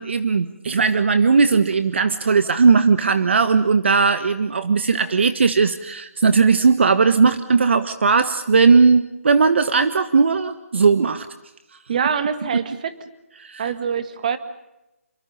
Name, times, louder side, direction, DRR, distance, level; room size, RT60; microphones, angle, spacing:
voice 1, 0.0-11.3 12.5-12.6 13.4-13.7, right 5 dB, 55° right, 10 dB, 1.4 m, -17 dB
voice 2, 11.9-12.9 13.6-14.4, right 7 dB, 35° right, 10 dB, 1.9 m, -24 dB
28.5 x 23.5 x 5.5 m, 0.94 s
hypercardioid pair, 165°, 8 cm